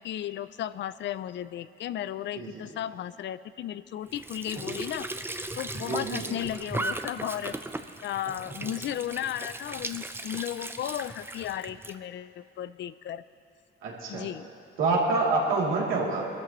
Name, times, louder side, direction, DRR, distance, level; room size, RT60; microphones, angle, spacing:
voice 1, 0.0-5.1 5.6-7.6 8.0-13.2 14.1-14.5, left 11 dB, 65° left, 15 dB, 0.5 m, -35 dB
voice 2, 2.3-2.7 5.8-6.4 8.6-8.7 13.8-14.3 14.8-16.2, right 3 dB, 85° right, -4 dB, 3.0 m, -27 dB
Squeak / Sink (filling or washing) / Trickle dribble, 4.1-12.0, right 2 dB, 10° right, 0.6 m, -37 dB
21.5 x 13.0 x 3.1 m, 2.5 s
cardioid pair, 90°, 20 cm